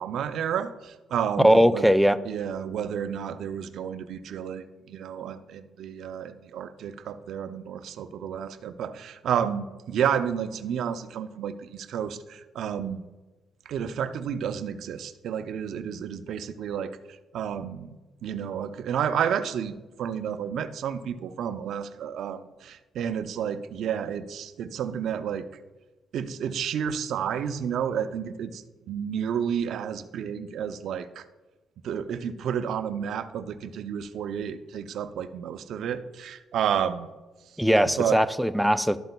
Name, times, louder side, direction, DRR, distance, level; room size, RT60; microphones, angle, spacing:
voice 1, 0.0-1.8 2.3-13.0 13.7-17.0 17.3-18.0 18.2-25.5 26.1-31.2 31.8-37.1 38.0-38.2, right 8 dB, 75° right, 11 dB, 0.5 m, -31 dB
voice 2, 1.4-2.2 37.6-39.0, equal, ahead, 10 dB, 0.3 m, -20 dB
12.0 x 7.7 x 2.2 m, 1.2 s
cardioid pair, 90°, 0 cm